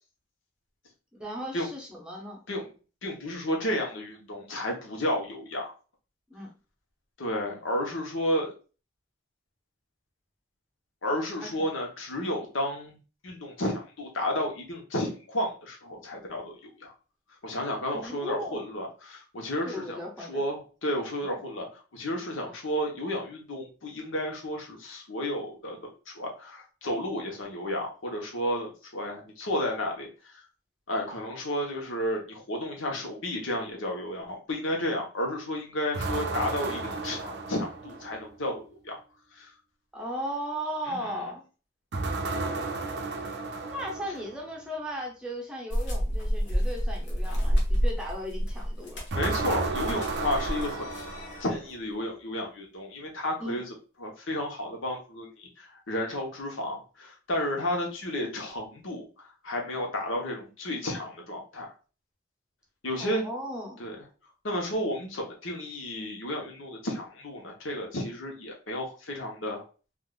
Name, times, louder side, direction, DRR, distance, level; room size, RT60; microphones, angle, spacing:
voice 1, 1.2-2.4 6.3-6.5 11.4-11.5 17.9-18.6 19.6-20.4 39.9-41.4 43.6-49.0 53.4-53.6 63.0-63.8, equal, 5° right, -2 dB, 0.7 m, -36 dB
voice 2, 3.0-5.7 7.2-8.5 11.0-13.0 13.2-16.9 17.4-20.0 20.3-25.8 26.1-30.4 30.9-39.0 39.3-39.5 40.9-41.2 49.1-50.9 51.4-53.6 54.0-61.7 62.8-63.3 63.8-64.0 64.4-69.6, left 1 dB, 85° left, 1 dB, 0.9 m, -32 dB
sound 1, 35.9-38.3 41.9-44.4 49.1-51.7, right 3 dB, 55° right, 0.4 m, -33 dB
sound 2, 45.7-51.2, equal, 60° left, 0.9 m, -28 dB
sound 3, 49.4-51.6, left 5 dB, 40° left, 0.5 m, -46 dB
3.5 x 2.5 x 2.3 m, 0.35 s
head